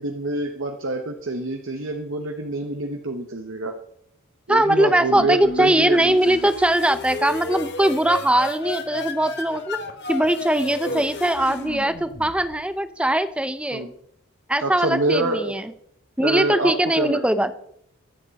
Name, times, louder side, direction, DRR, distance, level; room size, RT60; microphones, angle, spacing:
voice 1, 0.0-3.7 4.5-6.4 10.9-11.0 13.7-13.9 14.6-15.5 16.2-17.2, right 2 dB, 65° right, 4 dB, 1.0 m, -26 dB
voice 2, 4.5-9.8 10.1-13.9 14.5-15.7 16.2-17.6, right 1 dB, 5° right, 11 dB, 0.6 m, -21 dB
sound 1, 5.1-12.7, left 2 dB, 55° left, 1.7 m, -33 dB
24.0 x 8.0 x 4.1 m, 0.72 s
head